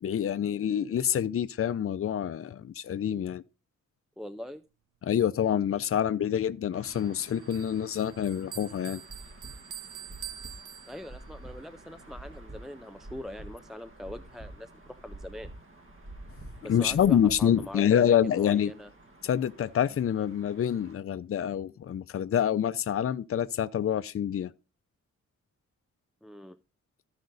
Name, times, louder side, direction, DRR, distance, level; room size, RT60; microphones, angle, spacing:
voice 1, 0.0-3.4 5.0-9.0 16.7-18.7 19.2-24.5, left 9 dB, 50° left, 0.5 m, -27 dB
voice 2, 4.2-4.6 10.9-15.5 16.6-18.9 26.2-26.6, left 1 dB, ahead, 0.4 m, -43 dB
sound 1, 6.7-21.0, right 2 dB, 45° right, 2.0 m, -55 dB
Bell, 6.9-11.4, right 10 dB, 90° right, 0.8 m, -45 dB
sound 2, 9.1-17.7, right 1 dB, 25° right, 2.0 m, -47 dB
14.0 x 5.3 x 3.9 m
wide cardioid pair, 105°, 30 cm